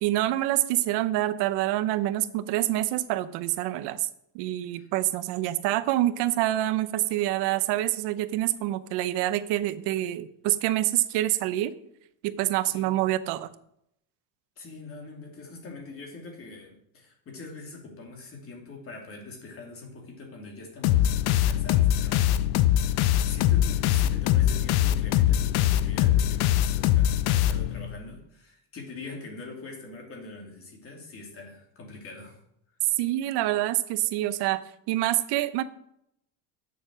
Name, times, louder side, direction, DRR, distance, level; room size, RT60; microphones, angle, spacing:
voice 1, 0.0-4.1 4.3-11.7 12.2-13.5 33.0-34.6 34.9-35.6, right 14 dB, 75° right, 13 dB, 0.8 m, -26 dB
voice 2, 14.6-22.4 22.7-32.4, left 3 dB, 35° left, 1 dB, 2.6 m, -43 dB
sound 1, 20.8-28.0, left 12 dB, 65° left, 0.6 m, -23 dB
8.1 x 7.0 x 6.1 m, 0.75 s
cardioid pair, 155°, 41 cm